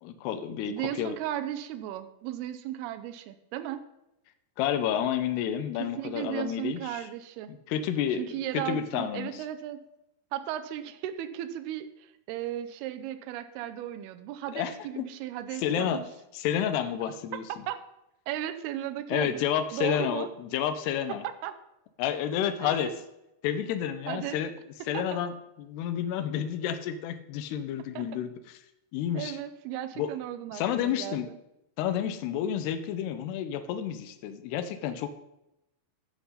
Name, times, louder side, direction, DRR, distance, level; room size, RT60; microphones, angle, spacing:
voice 1, 0.0-1.2 4.6-7.0 7.5-9.4 14.5-15.1 15.6-16.0 16.3-17.4 19.1-21.2 22.0-23.0 23.4-24.5 24.9-28.3 28.9-29.4 30.0-30.1 30.5-31.3 31.8-35.1, left 9 dB, 80° left, 9 dB, 2.8 m, -30 dB
voice 2, 0.7-3.8 5.8-7.5 8.2-9.8 10.3-16.1 17.7-17.8 18.3-19.5 19.7-20.3 21.4-21.5 22.6-22.9 24.1-24.4 24.9-25.0 28.0-28.1 29.1-31.4, right 12 dB, 80° right, 9 dB, 2.5 m, -35 dB
14.5 x 5.9 x 5.7 m, 0.88 s
omnidirectional pair, 4.9 m